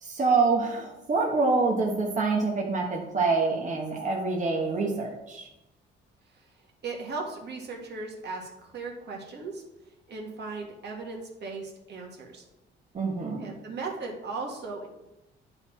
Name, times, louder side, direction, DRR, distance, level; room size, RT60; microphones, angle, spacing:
voice 1, 0.0-5.5 12.9-13.5, right 4 dB, 40° right, -2 dB, 1.3 m, -26 dB
voice 2, 6.8-9.6 10.1-12.4 13.4-14.9, right 3 dB, 60° right, 0 dB, 1.9 m, -37 dB
9.6 x 4.6 x 4.5 m, 0.95 s
cardioid pair, 90°, 20 cm